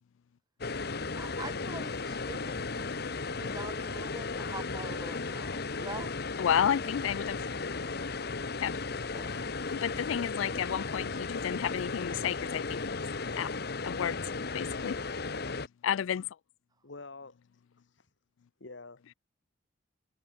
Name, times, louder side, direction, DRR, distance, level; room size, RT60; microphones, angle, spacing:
sound 1, 0.6-15.7, left 4 dB, 55° left, 1.1 m, -35 dB
voice 1, 1.1-6.1 9.1-9.5, right 3 dB, 20° right, 1.1 m, -45 dB
voice 2, 6.4-7.4 8.6-8.8 9.7-13.1 13.4-13.5 13.8-15.0 15.8-16.3, left 9 dB, 85° left, 0.4 m, -31 dB
voice 3, 16.8-18.1 18.6-19.1, left 3 dB, 70° left, 1.5 m, -49 dB
head